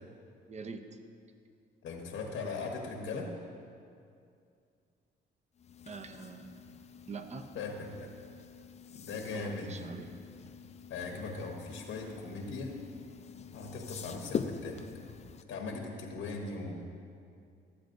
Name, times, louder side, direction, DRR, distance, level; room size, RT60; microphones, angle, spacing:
voice 1, 0.5-0.9 5.9-6.6 7.1-7.5 9.3-10.1, right 4 dB, 35° right, 7 dB, 0.7 m, -44 dB
voice 2, 1.8-3.3 7.5-8.1 8.9-9.7 10.9-12.8 13.5-14.8 15.5-16.8, left 3 dB, 80° left, 1 dB, 1.1 m, -39 dB
sound 1, 5.6-15.4, left 6 dB, 35° left, 0.4 m, -44 dB
14.0 x 8.2 x 2.6 m, 2.4 s
cardioid pair, 90°, 20 cm